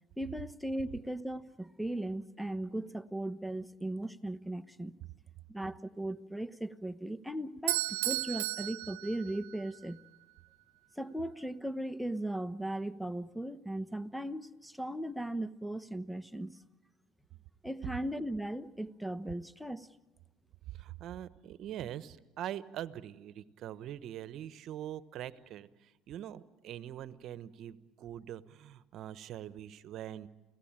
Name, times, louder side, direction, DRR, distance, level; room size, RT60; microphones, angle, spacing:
voice 1, 0.2-5.0 5.5-10.0 11.0-16.6 17.6-19.9, right 1 dB, ahead, 10 dB, 1.0 m, -37 dB
Bell / Doorbell, 7.7-9.8, right 17 dB, 90° right, 0.7 m, -34 dB
voice 2, 20.7-30.3, right 11 dB, 60° right, 14 dB, 1.1 m, -43 dB
29.5 x 17.0 x 8.9 m, 1.2 s
supercardioid pair, 85°, 0 cm